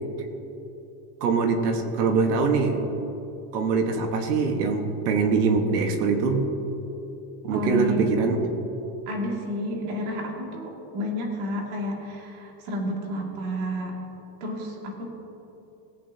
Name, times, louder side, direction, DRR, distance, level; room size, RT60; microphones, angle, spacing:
voice 1, 1.2-2.9 3.5-6.5 7.4-8.4, right 4 dB, 90° right, 5 dB, 1.5 m, -23 dB
voice 2, 7.5-8.0 9.1-14.0 14.4-15.1, equal, 65° right, -1 dB, 2.5 m, -30 dB
17.5 x 8.8 x 2.8 m, 3.0 s
supercardioid pair, 155°, 46 cm